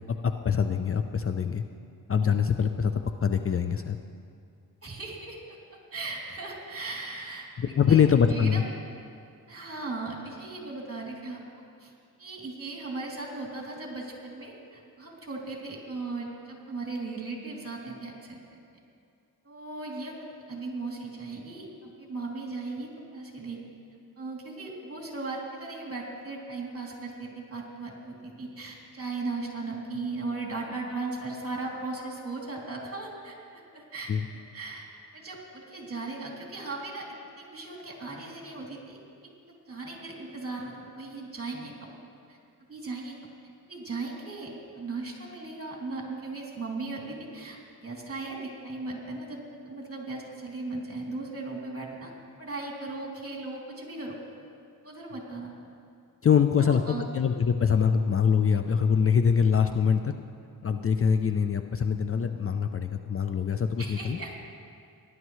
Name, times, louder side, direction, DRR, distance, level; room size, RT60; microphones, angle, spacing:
voice 1, 0.1-1.6 2.1-4.0 7.6-8.6 34.1-34.3 56.2-60.1 60.6-64.2, left 7 dB, 40° left, 8 dB, 0.5 m, -24 dB
voice 2, 4.8-5.6 5.9-7.5 7.9-8.0 8.3-8.6 9.5-11.4 11.8-11.9 12.2-18.4 19.4-20.1 20.5-21.7 22.0-23.6 24.2-34.8 35.1-39.0 39.7-41.9 42.3-42.4 42.7-43.1 43.6-49.4 49.6-52.1 52.4-54.2 54.8-55.5 56.6-57.0 63.8-64.4, right 3 dB, 40° right, -1 dB, 2.9 m, -37 dB
18.0 x 11.0 x 3.2 m, 2.3 s
cardioid pair, 75°, 37 cm